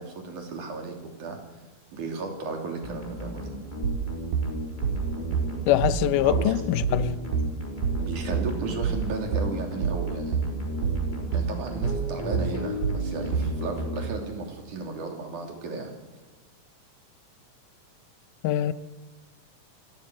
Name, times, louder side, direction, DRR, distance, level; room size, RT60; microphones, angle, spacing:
voice 1, 0.0-1.4 1.9-3.6 6.2-6.5 8.0-10.4 11.3-15.9, right 3 dB, 70° right, 4.6 m, -34 dB
sound 1, 2.8-14.7, equal, 15° left, 3.4 m, -35 dB
sound 2, 3.8-13.6, right 7 dB, 85° right, 3.2 m, -27 dB
voice 2, 5.7-7.2 18.4-18.7, left 12 dB, 80° left, 2.3 m, -23 dB
26.5 x 18.0 x 6.2 m
omnidirectional pair, 3.7 m